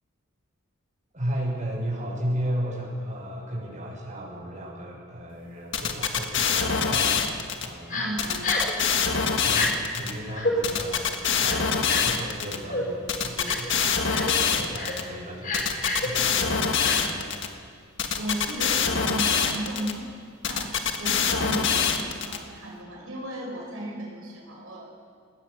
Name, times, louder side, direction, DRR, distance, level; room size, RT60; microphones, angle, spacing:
voice 1, 1.1-7.3 7.6-8.1 9.4-11.0 11.4-14.2 14.4-17.3, equal, 35° right, -4 dB, 6.9 m, -34 dB
sound 1, 5.7-7.7 8.2-10.1 10.6-12.6 13.1-15.0 15.5-17.5 18.0-19.9 20.4-22.4, left 6 dB, 60° left, 1.5 m, -24 dB
Crying sobbing, 7.9-8.1 8.4-8.7 9.5-9.7 10.3-10.5 11.4-12.1 12.7-12.8 13.4-13.7 14.1-14.3 14.7-14.9 15.4-16.1 16.8-16.9, left 2 dB, 45° left, 4.0 m, -29 dB
voice 2, 7.9-9.0 18.2-20.0 20.4-24.9, right 1 dB, 90° right, -2 dB, 5.3 m, -35 dB
21.5 x 18.0 x 6.9 m, 2.2 s
head